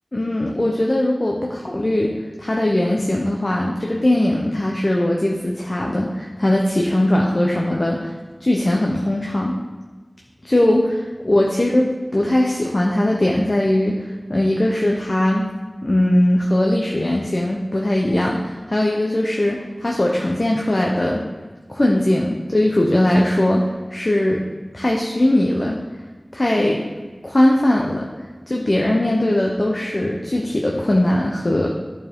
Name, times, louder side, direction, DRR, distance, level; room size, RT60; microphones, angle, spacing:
voice 1, 0.1-2.1 2.4-8.1 8.4-9.6 10.4-15.5 15.8-21.2 21.7-24.4 24.7-25.8 26.3-26.8 27.2-28.1 28.5-31.7, left 1 dB, 50° left, -1 dB, 0.8 m, -20 dB
11.0 x 4.7 x 3.7 m, 1.3 s
wide cardioid pair, 40°, 0 cm